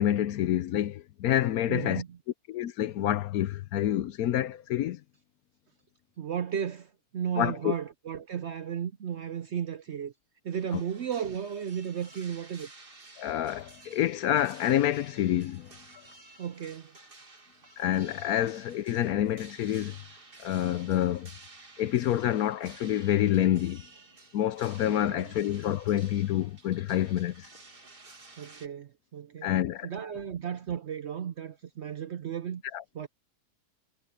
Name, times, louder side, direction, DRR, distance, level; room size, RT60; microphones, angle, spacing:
voice 1, 0.0-2.0 2.5-5.0 7.4-7.7 10.7-10.8 13.2-15.7 17.8-20.0 20.4-21.3 21.8-23.8 24.3-27.5 29.4-29.9 32.7-32.8, left 12 dB, 70° left, 1.0 m, -27 dB
voice 2, 1.7-2.2 6.2-10.1 10.4-12.7 16.4-16.9 24.9-25.3 28.4-29.5 29.8-32.6 32.9-33.1, right 8 dB, 60° right, 0.7 m, -34 dB
sound 1, 10.5-28.7, right 3 dB, 35° right, 2.2 m, -53 dB
omnidirectional pair, 1.7 m